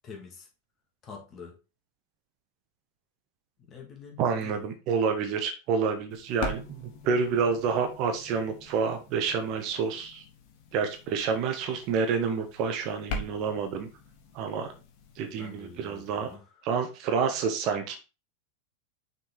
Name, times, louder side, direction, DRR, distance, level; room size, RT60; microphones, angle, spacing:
voice 1, 0.0-0.5 1.0-1.5 3.6-4.6 14.6-14.7 15.3-16.4, left 5 dB, 30° left, 2.2 m, -46 dB
voice 2, 4.2-10.2 10.7-13.9 14.3-14.7 15.1-16.3 16.6-18.0, right 5 dB, 40° right, 1.3 m, -28 dB
sound 1, 6.1-16.3, left 3 dB, 45° left, 1.5 m, -43 dB
6.3 x 4.4 x 4.7 m
figure-of-eight pair, 90°, 0 cm